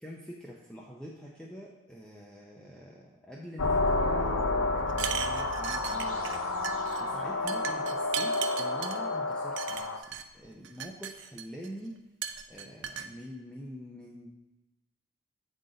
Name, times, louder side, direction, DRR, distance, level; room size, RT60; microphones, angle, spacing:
voice 1, 0.0-6.4 7.0-10.1 10.3-12.0 12.5-14.4, equal, 5° left, -4 dB, 0.5 m, -45 dB
sound 1, 3.6-10.0, left 2 dB, 90° left, 0.7 m, -30 dB
sound 2, 4.9-6.4 6.6-7.0 7.5-9.0 9.6-10.2 10.6-11.7 12.2-13.1, right 8 dB, 60° right, 0.4 m, -36 dB
7.8 x 3.9 x 3.9 m, 1.0 s
head